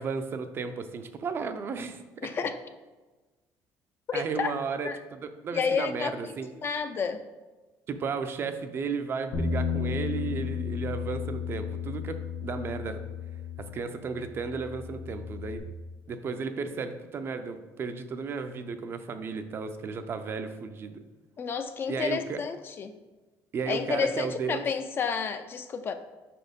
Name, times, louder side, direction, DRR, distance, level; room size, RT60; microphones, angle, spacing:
voice 1, 0.0-2.3 4.1-6.5 7.9-13.0 13.6-15.7 16.1-21.0 21.9-22.4 23.5-24.6, right 5 dB, 35° right, 8 dB, 0.5 m, -34 dB
voice 2, 2.2-2.6 4.1-4.5 4.8-5.0 5.5-7.2 21.4-22.9 23.7-25.9, left 6 dB, 35° left, 9 dB, 0.4 m, -30 dB
Bass guitar, 9.3-15.6, left 6 dB, 85° left, 1.4 m, -34 dB
5.4 x 4.2 x 5.1 m, 1.2 s
cardioid pair, 145°, 7 cm